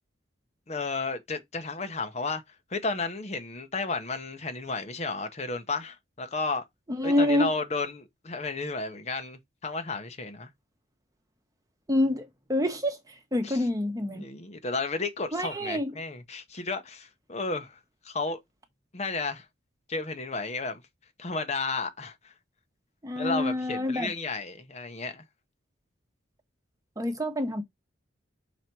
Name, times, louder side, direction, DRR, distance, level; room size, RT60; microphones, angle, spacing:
voice 1, 0.7-6.6 7.0-10.5 13.4-13.6 14.1-17.8 18.0-18.4 18.9-19.5 19.9-20.8 21.2-22.3 23.1-25.2, left 3 dB, 35° left, 0.8 m, -33 dB
voice 2, 6.9-7.5 11.9-13.0 13.3-14.3 15.3-15.9 23.0-24.1 27.0-27.6, left 1 dB, 20° right, 1.1 m, -27 dB
5.9 x 4.1 x 4.5 m
head